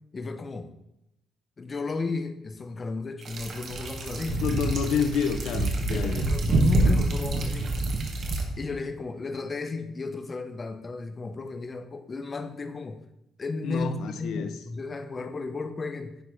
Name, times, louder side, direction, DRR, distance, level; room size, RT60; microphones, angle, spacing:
voice 1, 0.1-0.7 1.6-4.4 5.9-7.7 8.6-13.0 13.4-16.2, left 3 dB, 25° left, 8 dB, 0.7 m, -34 dB
sound 1, 3.2-8.4, right 2 dB, 50° right, 1.4 m, -26 dB
voice 2, 4.4-6.3 13.6-14.5, left 6 dB, 75° left, 10 dB, 0.7 m, -28 dB
10.0 x 4.7 x 4.9 m, 0.84 s
cardioid pair, 135°, 0 cm